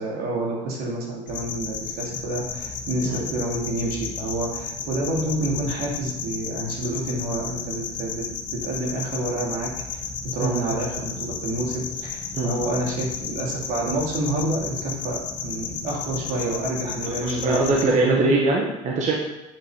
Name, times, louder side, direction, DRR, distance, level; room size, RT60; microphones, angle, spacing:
voice 1, 0.0-8.2 8.5-10.0 10.3-18.3, right 1 dB, 80° right, -3 dB, 2.8 m, -28 dB
sound 1, 1.3-17.9, left 5 dB, 60° left, 1.5 m, -33 dB
voice 2, 10.4-10.7 12.3-12.5 17.2-19.2, right 3 dB, 50° right, -2 dB, 1.5 m, -22 dB
8.9 x 5.5 x 5.1 m, 1.0 s
supercardioid pair, 90°, 15 cm